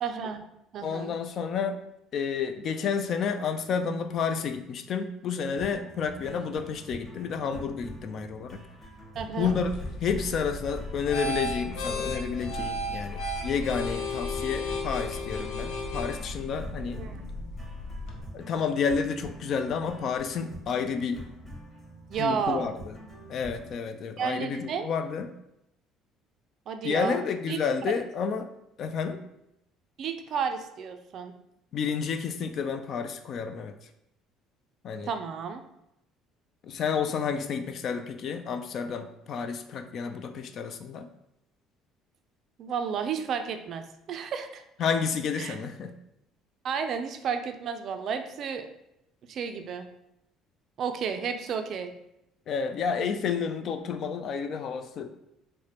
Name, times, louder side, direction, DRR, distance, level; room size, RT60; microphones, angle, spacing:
voice 1, 0.0-0.4 0.7-1.1 9.2-9.6 17.0-17.2 22.1-22.7 24.2-24.9 26.7-27.2 27.5-27.6 30.0-31.4 35.1-35.6 42.6-44.6 45.4-45.6 46.6-48.6 49.3-49.9 50.8-51.9, right 6 dB, 50° right, 7 dB, 0.4 m, -32 dB
voice 2, 0.8-1.8 2.1-8.6 9.4-9.7 10.0-17.0 18.3-21.2 22.2-22.9 23.3-25.3 26.8-28.5 28.8-29.2 31.7-33.7 34.8-35.1 36.6-41.1 44.8-45.9 52.5-55.1, left 6 dB, 50° left, 8 dB, 0.3 m, -30 dB
sound 1, 5.6-23.7, right 1 dB, 5° left, 1.1 m, -46 dB
sound 2, 9.4-18.2, left 2 dB, 85° left, 0.7 m, -34 dB
4.7 x 2.1 x 2.8 m, 0.83 s
cardioid pair, 130°, 0 cm